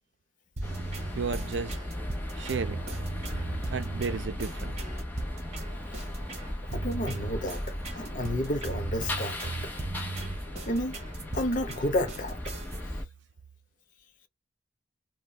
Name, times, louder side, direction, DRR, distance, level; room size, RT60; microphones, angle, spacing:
sound 1, 0.6-13.0, left 1 dB, 10° left, 1.0 m, -36 dB
sound 2, 0.6-12.8, right 2 dB, 35° right, 1.0 m, -38 dB
voice 1, 1.1-1.8 2.4-2.8 3.7-4.8, right 5 dB, 70° right, 0.5 m, -33 dB
voice 2, 6.7-9.7 10.7-10.9 11.3-12.4, left 1 dB, 45° left, 0.7 m, -31 dB
3.8 x 2.2 x 2.2 m
head